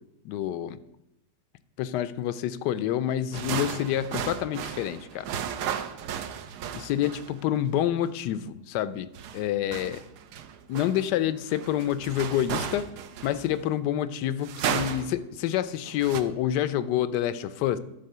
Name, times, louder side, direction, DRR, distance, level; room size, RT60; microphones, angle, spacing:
voice 1, 0.2-0.8 1.8-5.2 6.7-10.0 10.7-12.9 13.2-17.8, left 11 dB, 80° left, 15 dB, 1.2 m, -28 dB
sound 1, 3.3-7.4 9.1-13.6 14.4-15.2 15.8-16.2, right 8 dB, 75° right, 1.2 m, -34 dB
12.0 x 4.2 x 6.6 m, 0.90 s
omnidirectional pair, 1.8 m